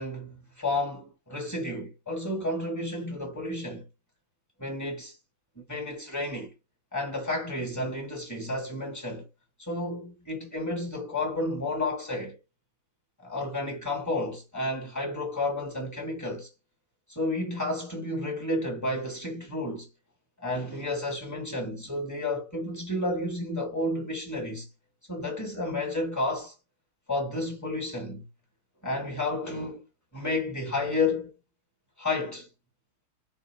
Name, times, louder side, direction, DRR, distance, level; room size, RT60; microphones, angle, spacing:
voice 1, 0.0-3.9 4.6-5.2 5.6-6.5 6.9-9.3 9.6-12.4 13.2-16.5 17.1-19.9 20.4-24.7 25.1-26.5 27.1-28.3 28.8-29.9 30.1-31.4 32.0-32.5, left 2 dB, 10° left, 0.9 m, -31 dB
5.2 x 2.5 x 3.3 m
omnidirectional pair, 2.3 m